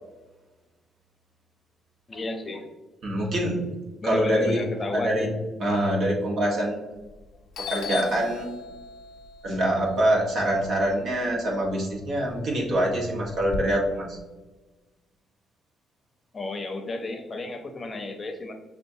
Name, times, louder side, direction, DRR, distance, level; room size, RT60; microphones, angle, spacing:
voice 1, 2.1-2.6 4.0-5.3 16.3-18.5, left 2 dB, 35° left, 4 dB, 0.7 m, -32 dB
voice 2, 3.0-3.6 4.0-4.6 4.9-5.3 5.6-6.8 7.6-8.5 9.4-14.2, right 1 dB, 65° right, -2 dB, 1.4 m, -25 dB
Doorbell, 7.0-7.3 7.5-11.7 12.1-13.6, left 6 dB, 80° left, 0.5 m, -38 dB
6.3 x 2.5 x 2.7 m, 1.2 s
cardioid pair, 90°, 0 cm